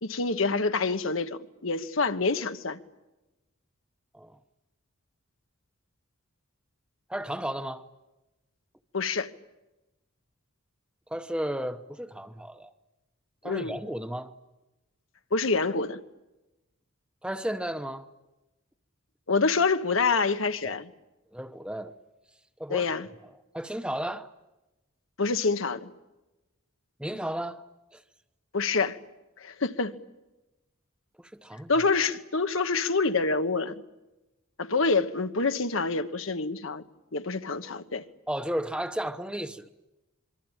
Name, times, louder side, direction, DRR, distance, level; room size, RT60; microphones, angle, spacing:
voice 1, 0.0-2.8 8.9-9.3 13.4-13.7 15.3-16.0 19.3-20.9 22.7-23.1 25.2-25.9 28.5-29.0 29.4-30.0 31.7-33.7 34.6-36.8 37.1-38.0, left 4 dB, 70° left, 1.2 m, -26 dB
voice 2, 7.1-7.9 11.1-12.7 13.4-14.3 17.2-18.1 20.6-20.7 21.3-22.0 22.6-22.9 23.5-24.3 27.0-27.7 27.9-28.0 31.3-31.7 38.3-39.7, right 1 dB, 5° right, 0.9 m, -33 dB
26.0 x 23.5 x 9.1 m
head